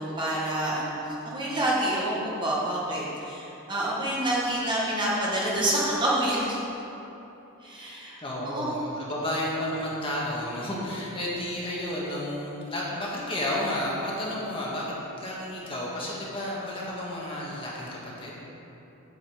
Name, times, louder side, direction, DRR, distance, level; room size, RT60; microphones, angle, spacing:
voice 1, 0.0-6.6 7.6-8.7, right 1 dB, 20° right, -6 dB, 1.5 m, -28 dB
voice 2, 8.2-18.5, left 1 dB, 25° left, -5 dB, 1.8 m, -32 dB
8.5 x 5.4 x 7.9 m, 3.0 s
head